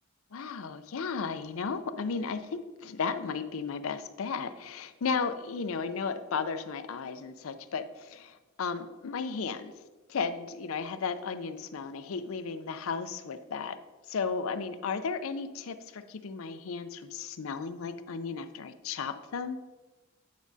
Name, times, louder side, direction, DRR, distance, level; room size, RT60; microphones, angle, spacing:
voice 1, 0.3-9.7 10.1-13.8 14.1-19.6, left 5 dB, 75° left, 10 dB, 0.5 m, -34 dB
9.2 x 6.0 x 2.7 m, 1.2 s
head